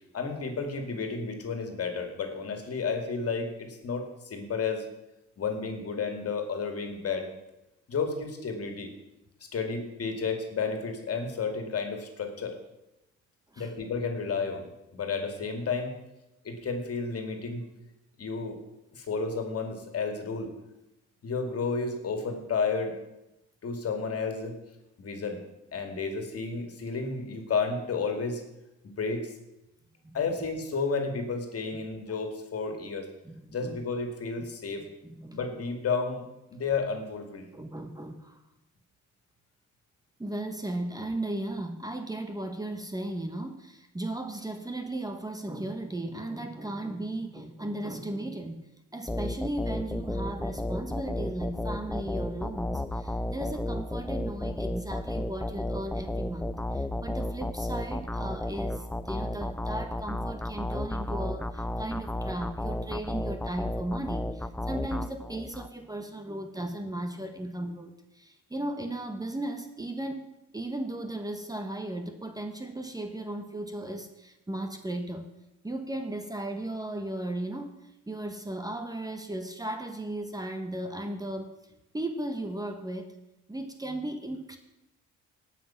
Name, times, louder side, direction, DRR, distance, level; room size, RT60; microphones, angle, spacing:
voice 1, 0.1-4.8 5.4-7.3 7.9-8.9 9.5-12.6 13.6-16.0 16.4-17.6 18.2-18.6 18.9-20.5 21.2-22.9 23.6-24.6 25.0-25.4 25.7-28.4 28.8-29.3 30.1-33.1 33.5-34.9 35.3-36.2 36.5-37.5, left 4 dB, 50° left, 5 dB, 2.3 m, -32 dB
voice 2, 30.0-30.4 33.2-33.8 35.0-35.4 37.5-38.4 40.2-48.7 48.9-75.3 75.6-77.8 78.1-81.6 81.9-83.2 83.5-84.6, right 1 dB, 10° right, 6 dB, 1.1 m, -36 dB
sound 1, 49.1-65.7, left 1 dB, 5° left, 0.4 m, -33 dB
17.5 x 5.9 x 5.8 m, 0.92 s
cardioid pair, 90°, 30 cm